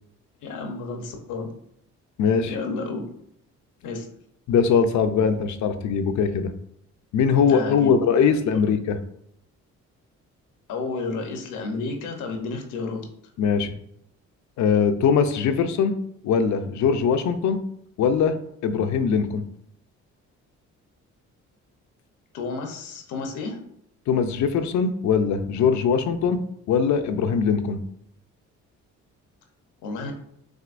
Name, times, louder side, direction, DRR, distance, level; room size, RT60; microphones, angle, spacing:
voice 1, 0.4-1.5 2.4-3.0 3.8-4.1 7.4-8.0 10.7-13.1 22.3-23.6 29.8-30.1, left 3 dB, 90° left, 3 dB, 0.9 m, -31 dB
voice 2, 2.2-2.6 4.5-6.5 7.1-9.0 13.4-13.7 14.6-16.0 16.2-17.6 18.0-18.4 18.6-19.4 24.1-26.4 26.7-27.8, left 6 dB, 70° left, 9 dB, 0.6 m, -21 dB
6.2 x 2.6 x 2.5 m, 0.72 s
cardioid pair, 90°, 30 cm